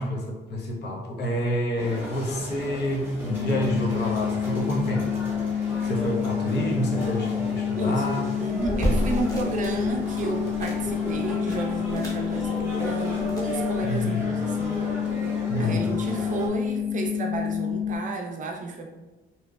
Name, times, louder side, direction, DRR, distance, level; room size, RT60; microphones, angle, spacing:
voice 1, 0.0-5.2 5.8-8.3 13.8-14.2 15.5-15.9, equal, 60° left, -2 dB, 0.6 m, -28 dB
sound 1, 1.8-16.5, equal, 10° right, 0.7 m, -35 dB
sound 2, 3.3-18.0, left 9 dB, 40° left, 1.1 m, -29 dB
voice 2, 8.4-14.8 15.6-18.9, right 3 dB, 40° right, 2 dB, 0.5 m, -32 dB
sound 3, 8.6-14.1, equal, 20° left, 0.9 m, -33 dB
2.7 x 2.0 x 2.3 m, 1.1 s
cardioid pair, 90°, 20 cm